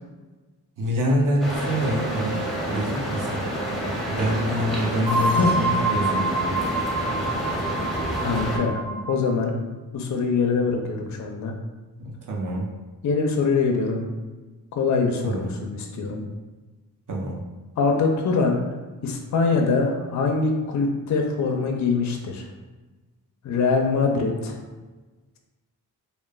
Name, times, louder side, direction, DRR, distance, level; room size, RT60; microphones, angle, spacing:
voice 1, 0.8-3.4 4.1-6.5 12.0-12.7 15.2-15.5 17.1-17.5, equal, 55° right, -1 dB, 0.6 m, -26 dB
sound 1, 1.4-8.6, equal, ahead, 0.6 m, -29 dB
sound 2, 1.5-3.8 5.1-9.3, right 2 dB, 75° right, 1.1 m, -28 dB
voice 2, 8.2-9.5 9.9-11.5 13.0-14.1 14.7-16.2 17.8-18.6 19.0-22.5 23.4-24.6, left 4 dB, 50° left, 2 dB, 0.4 m, -23 dB
3.0 x 2.0 x 2.3 m, 1.2 s
cardioid pair, 80°, 39 cm